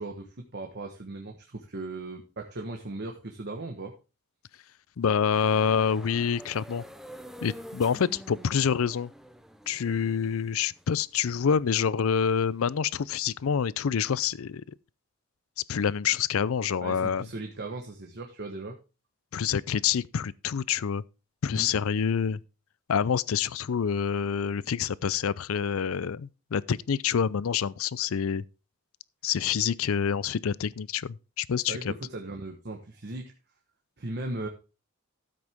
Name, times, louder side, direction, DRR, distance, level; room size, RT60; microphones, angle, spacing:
voice 1, 0.0-3.9 16.8-18.8 21.5-21.7 31.7-33.3 34.0-34.5, right 2 dB, 50° right, 1.2 m, -37 dB
voice 2, 5.0-6.8 7.4-9.1 9.7-14.6 15.7-17.3 19.3-21.0 21.4-22.4 22.9-28.4 29.2-31.8, left 7 dB, 70° left, 0.4 m, -27 dB
sound 1, 5.3-13.4, equal, ahead, 0.7 m, -48 dB
13.5 x 7.7 x 3.5 m
head